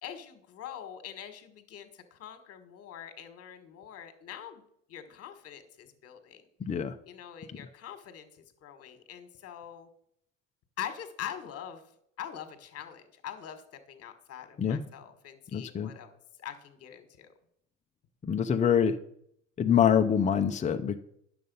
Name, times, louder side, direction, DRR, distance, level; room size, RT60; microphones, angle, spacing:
voice 1, 0.0-4.6 4.9-6.5 7.1-9.9 10.8-11.8 12.2-16.1 16.4-17.3, left 9 dB, 40° left, 8 dB, 1.7 m, -43 dB
voice 2, 15.5-15.9 18.2-18.9 19.6-21.0, left 8 dB, 20° left, 6 dB, 0.7 m, -25 dB
9.5 x 6.9 x 5.5 m, 0.72 s
supercardioid pair, 95°, 36 cm